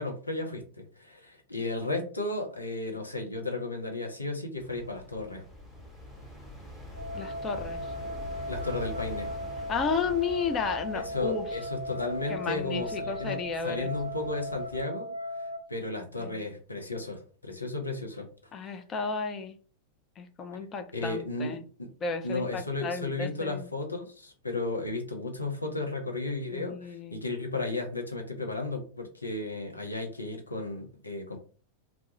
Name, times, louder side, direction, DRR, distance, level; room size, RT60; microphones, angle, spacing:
voice 1, 0.0-5.4 8.5-9.3 10.9-13.4 13.6-18.3 20.9-21.9 22.2-31.4, left 2 dB, 80° left, 0.5 m, -34 dB
sound 1, 4.6-14.8, equal, 5° left, 0.9 m, -45 dB
sound 2, 6.9-15.6, left 1 dB, 75° right, 0.3 m, -37 dB
voice 2, 7.1-7.9 9.7-11.5 12.3-13.9 16.2-16.3 18.5-19.6 20.2-21.6 22.0-23.7 26.5-27.2, left 5 dB, 25° left, 0.4 m, -33 dB
2.2 x 2.0 x 2.8 m
figure-of-eight pair, 90°, 0 cm